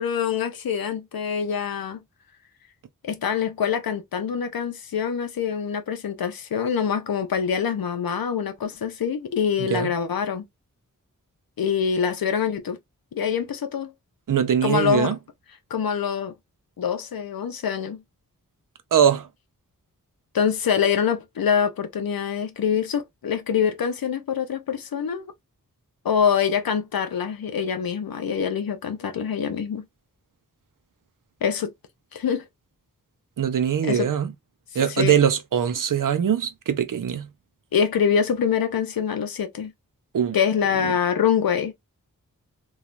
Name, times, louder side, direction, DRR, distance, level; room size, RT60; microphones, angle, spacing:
voice 1, 0.0-2.0 3.0-10.4 11.6-12.8 13.1-13.9 14.6-15.1 15.7-16.3 16.8-18.0 20.3-25.2 26.0-29.8 31.4-31.7 32.1-32.4 33.8-34.1 34.9-35.1 37.7-39.7 40.3-41.7, left 7 dB, 85° left, 0.6 m, -25 dB
voice 2, 14.3-15.1 18.9-19.3 33.4-34.3 34.7-37.3 40.1-40.4, right 8 dB, 65° right, 0.6 m, -22 dB
3.1 x 2.3 x 2.4 m
wide cardioid pair, 80°, 34 cm